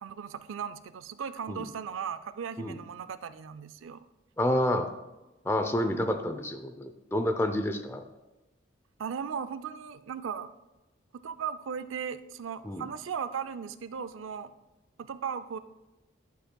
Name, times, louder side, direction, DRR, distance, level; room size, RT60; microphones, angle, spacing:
voice 1, 0.0-4.0 9.0-10.5 11.1-14.5 15.0-15.6, right 7 dB, 85° right, 12 dB, 0.4 m, -37 dB
voice 2, 4.4-4.9 5.4-8.0 12.6-12.9, left 1 dB, 10° left, 7 dB, 0.5 m, -29 dB
11.5 x 7.7 x 2.3 m, 1.0 s
head